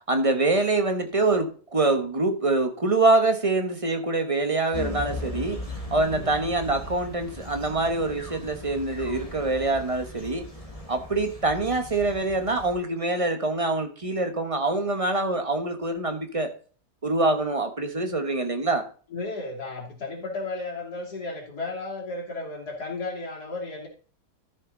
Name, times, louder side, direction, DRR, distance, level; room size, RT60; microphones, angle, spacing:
voice 1, 0.1-5.6 5.9-10.4 10.9-16.5 17.0-18.9, right 2 dB, 25° right, 6 dB, 1.3 m, -25 dB
sound 1, 4.7-12.7, left 1 dB, 20° left, 2.0 m, -38 dB
voice 2, 19.1-23.9, left 3 dB, 85° left, -1 dB, 3.3 m, -34 dB
13.0 x 6.4 x 3.9 m, 0.40 s
omnidirectional pair, 1.7 m